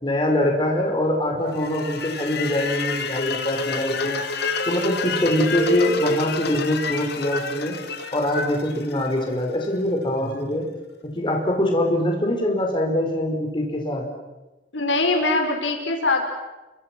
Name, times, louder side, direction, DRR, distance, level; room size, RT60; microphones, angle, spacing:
voice 1, 0.0-4.2 4.7-7.8 8.1-10.6 11.1-14.0, left 1 dB, 25° left, 1 dB, 4.8 m, -23 dB
sound 1, 1.6-9.7, left 4 dB, 60° left, 2.3 m, -28 dB
voice 2, 14.7-16.3, left 2 dB, 90° left, 3 dB, 5.1 m, -22 dB
30.0 x 25.5 x 6.1 m, 1.1 s
head